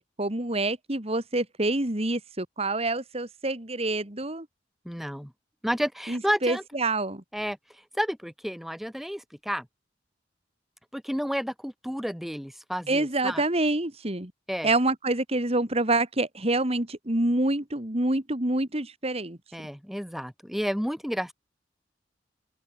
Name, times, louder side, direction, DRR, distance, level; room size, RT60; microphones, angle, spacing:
voice 1, 0.0-4.5 6.1-7.2 12.9-14.3 14.6-19.4, right 2 dB, 35° right, 2.5 m, -27 dB
voice 2, 4.9-5.3 5.6-6.6 7.3-7.6 7.9-9.7 10.9-13.4 14.5-14.7 19.5-21.3, equal, ahead, 3.6 m, -31 dB
head